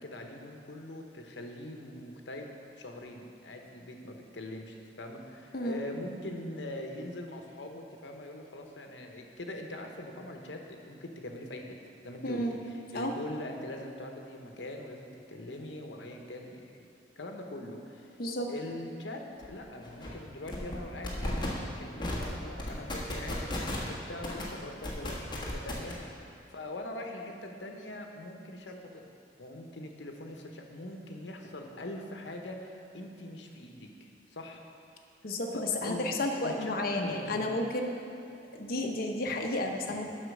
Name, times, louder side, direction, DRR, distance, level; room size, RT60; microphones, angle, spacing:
voice 1, 0.0-2.5 2.8-11.7 12.0-16.9 17.2-18.1 18.5-19.2 19.5-26.2 26.5-29.0 29.4-33.9 34.3-34.6 35.5-36.0 36.4-37.4, left 1 dB, 80° left, 3 dB, 0.9 m, -42 dB
voice 2, 12.2-12.6 12.9-13.1 18.2-18.5 35.2-37.9 38.5-40.0, left 1 dB, 55° left, 2 dB, 0.8 m, -32 dB
sound 1, 19.4-19.5 19.8-20.1 20.5-20.8 21.0-21.5 22.0-22.2 22.6-23.9 24.2-24.4 24.8-25.9, left 1 dB, 25° left, 1.4 m, -34 dB
7.9 x 5.7 x 6.5 m, 2.6 s
head